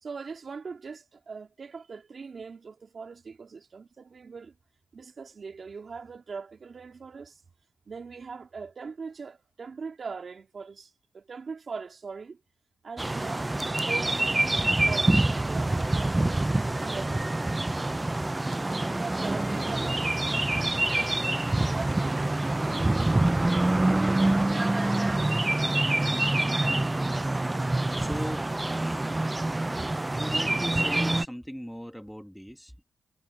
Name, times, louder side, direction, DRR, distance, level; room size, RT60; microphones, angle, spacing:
voice 1, 0.0-4.5 4.9-7.4 7.9-12.4 12.8-14.4 14.8-16.3 16.8-17.3 18.5-18.6 18.9-22.6, right 5 dB, 50° right, 2.5 m, -41 dB
sound 1, 13.0-31.2, right 2 dB, 20° right, 0.3 m, -26 dB
voice 2, 27.5-28.5 28.8-29.8 30.1-32.8, equal, ahead, 1.8 m, -40 dB
cardioid pair, 70°, 0 cm